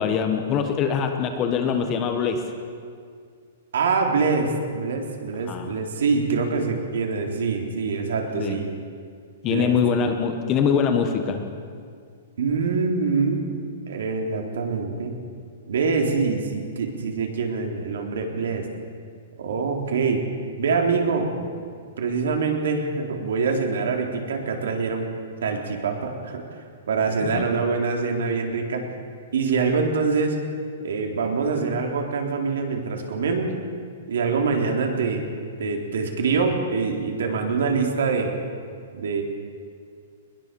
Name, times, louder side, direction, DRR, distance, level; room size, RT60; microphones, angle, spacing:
voice 1, 0.0-2.4 5.5-5.7 8.3-8.6 9.4-11.4 27.2-27.5, left 7 dB, 20° left, 5 dB, 1.3 m, -23 dB
voice 2, 3.7-8.7 9.5-9.8 12.4-13.5 13.9-15.1 15.7-18.7 19.4-20.2 20.6-21.5 22.0-25.1 25.4-26.4 26.9-28.8 29.3-30.4 30.8-33.5 34.1-35.3 35.6-38.3 38.9-39.2, right 4 dB, 70° right, 2 dB, 3.9 m, -24 dB
21.5 x 21.0 x 7.1 m, 2.2 s
hypercardioid pair, 180°, 0 cm